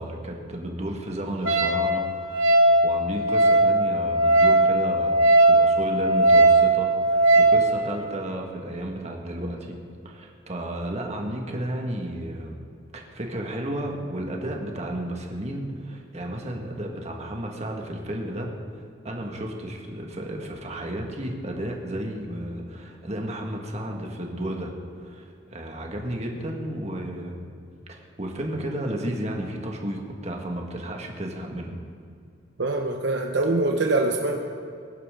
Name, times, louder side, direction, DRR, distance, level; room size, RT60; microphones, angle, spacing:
voice 1, 0.0-9.8 10.1-12.6 12.9-24.7 25.0-27.5 27.9-31.7, right 1 dB, 35° right, 1 dB, 1.8 m, -33 dB
Wind instrument woodwind instrument, 1.5-7.6, right 2 dB, 90° right, 1.8 m, -19 dB
voice 2, 32.6-34.4, right 2 dB, 65° right, 2 dB, 0.9 m, -24 dB
21.0 x 11.0 x 3.8 m, 2.4 s
head